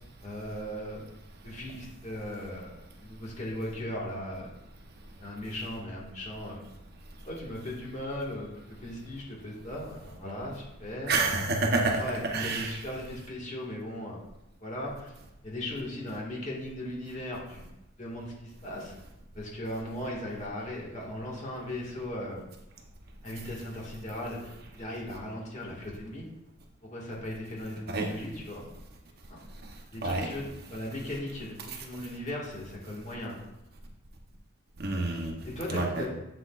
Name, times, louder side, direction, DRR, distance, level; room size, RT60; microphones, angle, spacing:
voice 1, 0.2-1.0 1.4-4.5 5.2-6.6 7.2-11.2 12.0-14.2 14.6-15.1 15.4-17.7 18.0-18.9 19.4-22.4 23.2-26.2 26.9-28.6 29.3-29.4 29.9-33.3 35.4-36.1, left 1 dB, 35° left, -4 dB, 1.7 m, -37 dB
voice 2, 11.1-12.0 12.3-12.7 27.9-28.1 30.0-30.3 34.8-35.3 35.7-35.9, right 3 dB, 50° right, 2 dB, 0.8 m, -27 dB
7.9 x 6.0 x 2.4 m, 0.91 s
head